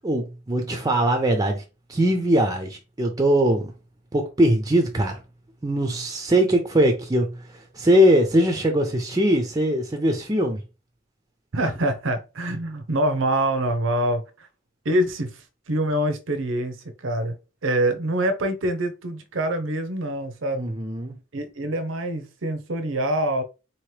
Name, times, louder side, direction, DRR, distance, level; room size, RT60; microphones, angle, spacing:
voice 1, 0.0-1.6 1.9-3.7 4.1-5.2 5.6-10.6 20.5-21.1, equal, 20° right, 0.5 m, -21 dB
voice 2, 11.5-14.5 14.8-17.4 17.6-20.7 21.3-23.4, right 1 dB, 80° right, 0.7 m, -25 dB
4.2 x 2.9 x 3.2 m
head